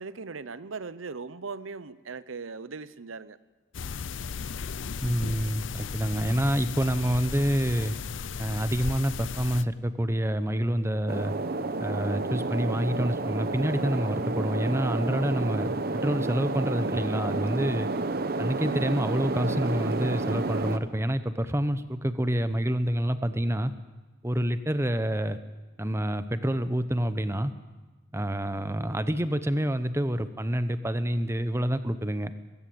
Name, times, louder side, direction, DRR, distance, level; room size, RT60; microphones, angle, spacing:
voice 1, 0.0-3.4, right 4 dB, 85° right, 16 dB, 0.8 m, -39 dB
sound 1, 3.7-9.6, left 5 dB, 70° left, 0.6 m, -35 dB
voice 2, 5.0-8.0 8.4-11.3 11.8-17.9 18.4-23.7 24.2-25.4 25.8-27.5 28.1-32.3, right 1 dB, 15° right, 12 dB, 0.9 m, -27 dB
sound 2, 11.1-20.8, right 2 dB, 50° right, 1.0 m, -30 dB
20.5 x 15.5 x 8.7 m, 1.2 s
head